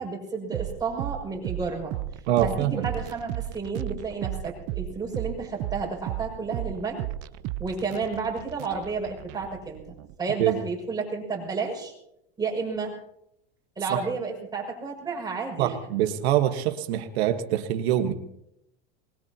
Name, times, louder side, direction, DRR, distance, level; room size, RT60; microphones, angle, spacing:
voice 1, 0.0-7.0 7.6-11.9 12.4-13.0 13.8-15.8, right 4 dB, 10° right, -2 dB, 6.1 m, -31 dB
sound 1, 0.5-10.1, right 14 dB, 50° right, 0.8 m, -35 dB
voice 2, 2.3-2.9 10.4-10.6 15.6-18.1, right 11 dB, 85° right, 6 dB, 1.4 m, -24 dB
23.5 x 21.0 x 2.9 m, 0.79 s
supercardioid pair, 135°, 31 cm